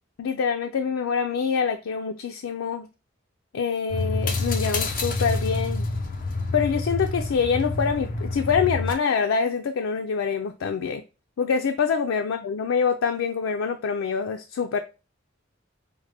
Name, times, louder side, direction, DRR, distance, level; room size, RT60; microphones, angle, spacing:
voice 1, 0.2-2.9 3.5-5.9 6.5-11.0 11.4-14.8, left 6 dB, 90° left, 0.4 m, -25 dB
sound 1, 3.9-8.9, left 3 dB, 45° left, 0.6 m, -27 dB
5.1 x 2.1 x 3.3 m
head